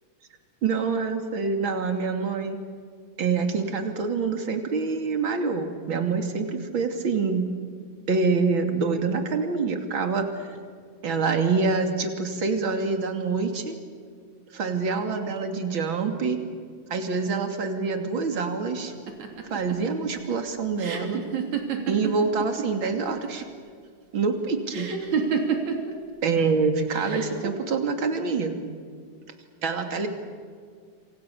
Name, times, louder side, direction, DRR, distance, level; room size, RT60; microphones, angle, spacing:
voice 1, 0.6-2.6 3.2-7.5 8.1-10.3 11.0-13.8 14.5-16.4 16.9-18.9 19.5-21.2 21.9-23.4 24.1-24.9 26.2-28.5 29.6-30.1, right 4 dB, 40° right, 5 dB, 3.3 m, -26 dB
sound 1, 19.1-22.7 22.9-23.6 24.7-25.9 26.9-27.5, right 6 dB, 65° right, 4.3 m, -29 dB
27.5 x 27.0 x 7.1 m, 2.1 s
omnidirectional pair, 3.5 m